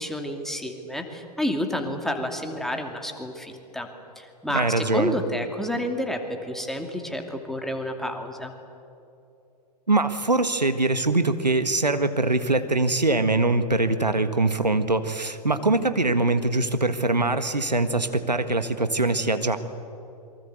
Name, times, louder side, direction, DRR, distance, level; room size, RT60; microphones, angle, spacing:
voice 1, 0.0-3.9 4.2-8.5, left 1 dB, ahead, 3 dB, 2.6 m, -30 dB
voice 2, 4.5-5.1 9.9-19.6, right 2 dB, 90° right, 10 dB, 1.6 m, -23 dB
27.5 x 23.5 x 8.1 m, 2.7 s
figure-of-eight pair, 105°, 21 cm